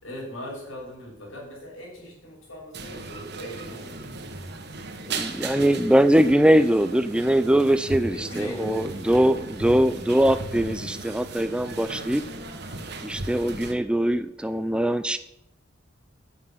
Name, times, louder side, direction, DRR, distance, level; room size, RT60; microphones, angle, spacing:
voice 1, 0.0-4.0 8.1-8.9, equal, 80° left, -2 dB, 6.4 m, -39 dB
sound 1, 2.7-13.7, right 2 dB, 55° right, 1.5 m, -36 dB
voice 2, 5.0-12.2 13.0-15.2, right 1 dB, 5° right, 12 dB, 0.4 m, -22 dB
9.7 x 7.6 x 8.9 m, 0.82 s
head